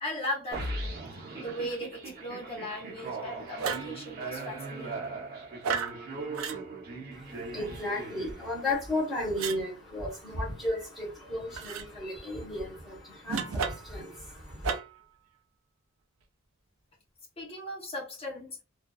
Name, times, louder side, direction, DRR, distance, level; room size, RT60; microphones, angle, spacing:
voice 1, 0.0-5.3 17.4-18.6, left 1 dB, 30° left, 0.9 m, -38 dB
sound 1, 0.5-8.8, right 3 dB, 45° right, 0.8 m, -39 dB
sound 2, 3.6-4.0 5.6-6.0 6.3-6.6 9.4-9.6 11.6-11.9 13.3-14.0 14.6-15.0, right 6 dB, 75° right, 0.4 m, -32 dB
voice 2, 7.1-14.8, left 1 dB, ahead, 1.0 m, -34 dB
2.5 x 2.3 x 2.3 m
head